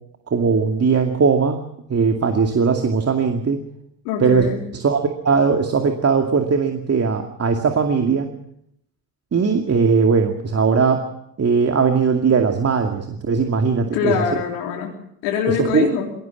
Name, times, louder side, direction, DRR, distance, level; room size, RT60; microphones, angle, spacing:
voice 1, 0.3-1.6 1.9-3.6 4.2-4.5 4.7-8.3 9.3-11.0 11.4-14.1 15.7-15.9, right 5 dB, 30° right, 4 dB, 2.4 m, -19 dB
voice 2, 4.0-4.7 13.9-15.0 15.2-16.1, left 6 dB, 80° left, 0 dB, 4.1 m, -23 dB
21.5 x 17.5 x 7.4 m, 0.73 s
hypercardioid pair, 75°, 46 cm